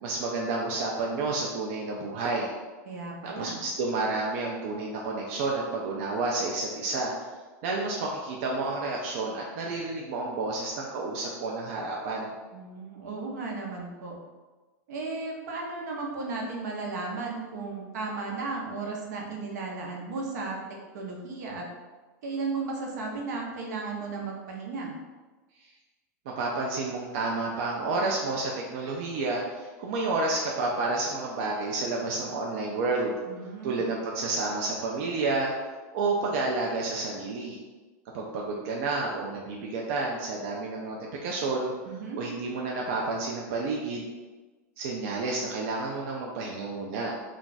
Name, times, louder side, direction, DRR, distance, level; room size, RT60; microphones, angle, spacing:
voice 1, 0.0-2.5 3.2-7.1 7.6-12.3 26.3-33.2 33.6-35.5 35.9-37.6 38.1-41.7 42.2-44.1 44.8-47.1, right 3 dB, 50° right, -2 dB, 0.4 m, -30 dB
voice 2, 2.9-3.6 12.5-14.1 14.9-20.6 20.9-21.6 22.2-24.9 33.3-33.8 41.9-42.2, right 3 dB, 80° right, -1 dB, 0.7 m, -35 dB
2.4 x 2.3 x 3.9 m, 1.3 s
supercardioid pair, 165°, 9 cm